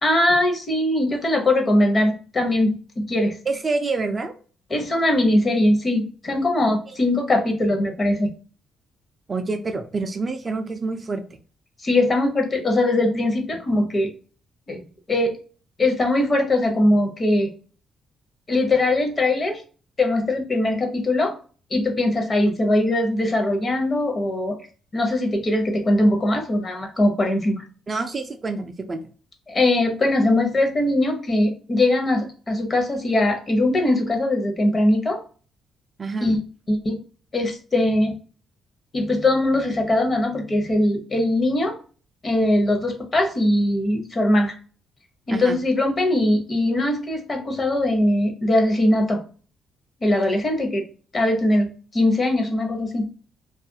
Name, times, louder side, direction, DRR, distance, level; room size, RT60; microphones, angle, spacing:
voice 1, 0.0-3.4 4.7-8.3 11.8-14.1 14.7-14.8 15.1-15.4 15.8-17.5 18.5-19.6 20.0-21.3 21.7-24.6 24.9-27.6 29.5-35.2 36.2-36.4 36.7-37.0 37.3-38.2 38.9-41.8 42.2-44.5 45.3-49.2 50.0-50.8 51.1-53.1, left 1 dB, 30° left, 3 dB, 0.7 m, -21 dB
voice 2, 3.5-4.3 6.9-7.0 9.3-11.2 22.4-22.6 27.9-29.0 36.0-36.3 45.3-45.6, right 3 dB, 30° right, 6 dB, 0.3 m, -27 dB
2.4 x 2.3 x 2.6 m, 0.39 s
cardioid pair, 110°, 0 cm